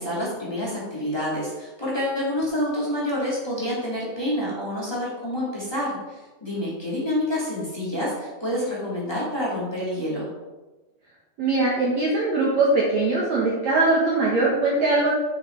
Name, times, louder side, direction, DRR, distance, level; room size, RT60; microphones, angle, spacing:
voice 1, 0.0-10.3, left 1 dB, 10° left, -7 dB, 1.6 m, -28 dB
voice 2, 11.4-15.1, right 2 dB, 70° right, -4 dB, 1.7 m, -21 dB
9.1 x 6.5 x 4.6 m, 1.2 s
omnidirectional pair, 5.3 m